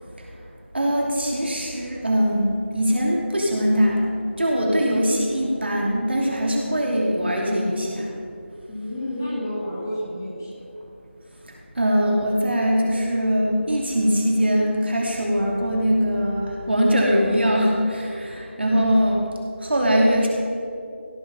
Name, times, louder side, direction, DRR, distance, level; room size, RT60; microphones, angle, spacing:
voice 1, 0.7-8.1 11.8-19.2 19.6-20.3, equal, 60° right, -2 dB, 2.7 m, -21 dB
voice 2, 8.7-10.6 18.4-18.9, left 1 dB, 15° left, -7 dB, 1.5 m, -31 dB
16.5 x 6.3 x 5.6 m, 2.5 s
figure-of-eight pair, 175°, 7 cm